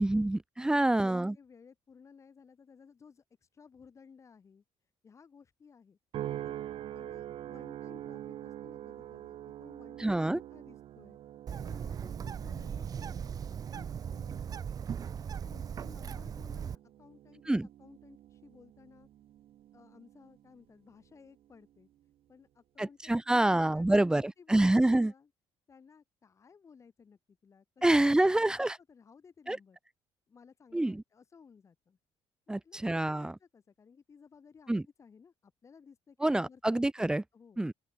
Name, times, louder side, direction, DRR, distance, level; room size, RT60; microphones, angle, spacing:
voice 1, 0.0-1.4 10.0-10.4 17.5-17.7 22.8-25.1 27.8-28.8 29.5-29.6 30.7-31.0 32.5-33.3 34.7-34.8 36.2-37.2 37.6-37.7, right 1 dB, 5° right, 0.7 m, -27 dB
voice 2, 0.6-4.6 5.0-6.0 6.4-6.6 6.9-11.2 11.6-13.4 13.7-14.4 15.2-19.1 19.7-21.9 22.3-25.3 25.7-27.8 28.2-29.8 30.3-32.0 32.5-34.7 35.0-36.6 37.0-37.1 37.3-37.6, left 6 dB, 25° left, 7.7 m, -58 dB
sound 1, 6.1-20.6 21.1-21.6, right 12 dB, 60° right, 3.6 m, -46 dB
Bird, 11.5-16.8, right 7 dB, 35° right, 2.0 m, -38 dB
open air
cardioid pair, 170°, 11 cm